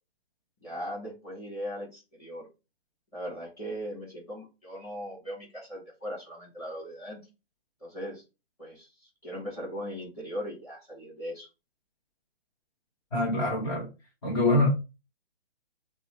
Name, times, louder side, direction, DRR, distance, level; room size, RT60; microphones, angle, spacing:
voice 1, 0.6-2.5 3.1-7.2 7.8-8.2 8.6-11.5, equal, 10° left, 1.5 m, -39 dB
voice 2, 13.1-13.9 14.2-14.7, left 2 dB, 35° left, 1.2 m, -25 dB
6.6 x 2.3 x 3.3 m
hypercardioid pair, 165°, 31 cm